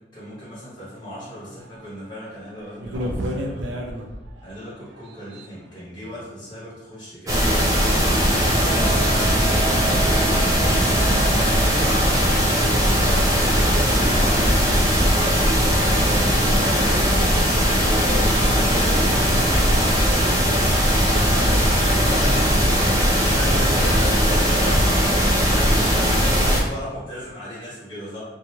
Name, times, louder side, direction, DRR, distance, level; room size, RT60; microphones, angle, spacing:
voice 1, 0.1-3.9 4.4-7.6 8.0-9.9 10.2-12.5 13.0-17.5 17.8-20.6 21.0-25.1 25.3-28.2, equal, 25° left, -11 dB, 1.2 m, -36 dB
sound 1, 1.7-1.8 2.2-2.3 2.8-4.4 5.0-5.4, equal, 75° right, 0.4 m, -30 dB
sound 2, 7.3-26.6, equal, 20° right, 0.4 m, -19 dB
Hammer, 8.3-14.5, right 9 dB, 55° left, 1.3 m, -35 dB
2.7 x 2.3 x 2.9 m, 1.1 s
head